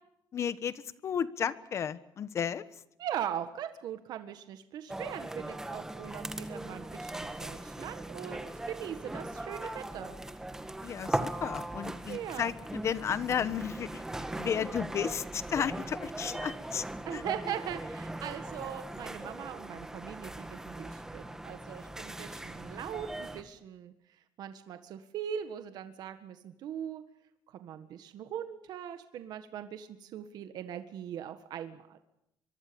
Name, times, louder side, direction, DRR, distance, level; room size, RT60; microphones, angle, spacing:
voice 1, 0.3-2.8 10.8-17.2, left 8 dB, 40° left, 15 dB, 1.2 m, -34 dB
voice 2, 3.0-10.1 12.1-12.5 17.0-27.0 27.5-32.0, right 9 dB, 65° right, 9 dB, 1.7 m, -40 dB
sound 1, 4.9-23.4, right 1 dB, 5° right, 1.7 m, -39 dB
24.5 x 23.5 x 7.1 m, 0.82 s
cardioid pair, 170°, 7 cm